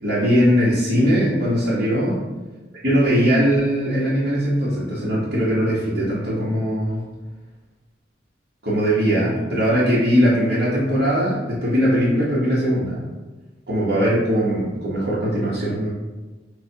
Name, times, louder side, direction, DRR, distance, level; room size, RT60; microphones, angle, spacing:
voice 1, 0.0-2.2 2.8-7.0 8.6-13.1 13.7-15.9, equal, 65° right, -10 dB, 1.1 m, -20 dB
6.5 x 2.4 x 2.8 m, 1.2 s
head